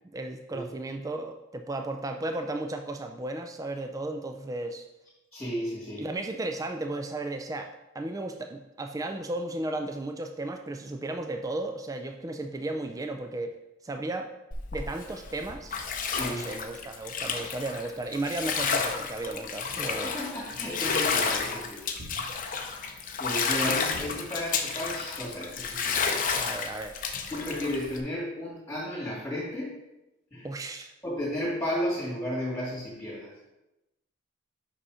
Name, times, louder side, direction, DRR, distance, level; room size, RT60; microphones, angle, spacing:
voice 1, 0.1-4.9 6.0-13.6 13.8-14.3 14.7-15.8 16.3-20.2 26.3-27.0 30.4-30.9, right 2 dB, 15° right, 5 dB, 0.3 m, -34 dB
voice 2, 5.3-6.1 16.1-16.5 20.0-21.8 22.1-22.3 23.2-26.0 27.3-29.8 30.3-30.5 31.0-33.3, left 1 dB, 15° left, -9 dB, 2.1 m, -33 dB
Bathtub (filling or washing), 14.5-28.0, left 5 dB, 40° left, 0.6 m, -31 dB
sound 1, 22.0-22.8 23.9-24.7, equal, 80° right, 1.1 m, -46 dB
5.6 x 5.1 x 4.9 m, 0.96 s
head